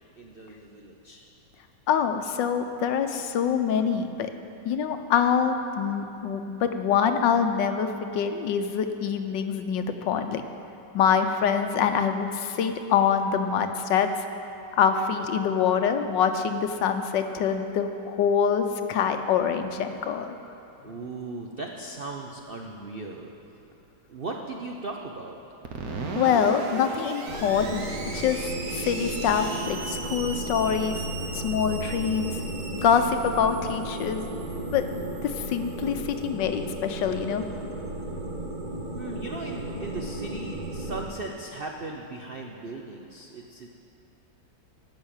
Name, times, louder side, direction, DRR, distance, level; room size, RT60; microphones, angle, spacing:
voice 1, 0.2-1.3 20.8-23.3 24.1-25.4 37.9-38.0 38.9-43.7, right 2 dB, 80° right, 1 dB, 0.5 m, -38 dB
voice 2, 1.9-4.3 4.6-10.4 10.9-14.1 14.7-20.4 26.1-31.0 31.3-32.3 32.7-34.3 34.7-34.8 35.2-37.5, left 7 dB, 75° left, 8 dB, 1.3 m, -25 dB
Screech, 25.6-36.1, right 3 dB, 55° right, 1.5 m, -38 dB
sound 1, 27.3-41.0, right 1 dB, 25° right, 1.2 m, -34 dB
12.0 x 6.3 x 8.8 m, 3.0 s
omnidirectional pair, 2.1 m